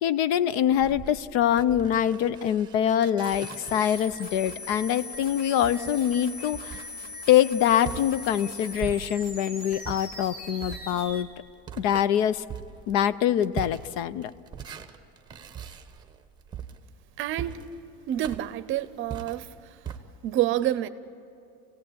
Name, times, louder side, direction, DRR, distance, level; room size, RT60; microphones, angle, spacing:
voice 1, 0.0-6.8 7.3-11.3 11.8-12.4 12.9-14.3, left 10 dB, 65° left, 0.7 m, -24 dB
sound 1, 0.7-9.4 9.8-20.0, right 8 dB, 15° right, 0.9 m, -42 dB
sound 2, 3.2-11.2, left 2 dB, 30° left, 2.4 m, -40 dB
voice 2, 17.2-17.6 18.1-19.5 20.2-20.9, right 13 dB, 40° right, 0.7 m, -27 dB
29.0 x 17.0 x 8.6 m
cardioid pair, 170°, 32 cm